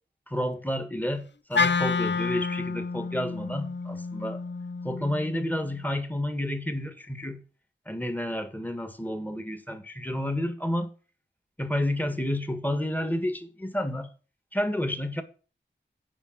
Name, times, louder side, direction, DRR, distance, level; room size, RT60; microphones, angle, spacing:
voice 1, 0.3-4.4 4.8-7.4 7.9-10.9 11.6-14.1 14.5-15.2, left 1 dB, 10° left, 1.7 m, -30 dB
Wind instrument woodwind instrument, 1.5-5.8, left 5 dB, 65° left, 0.6 m, -29 dB
8.9 x 5.5 x 7.4 m
wide cardioid pair, 75°, 20 cm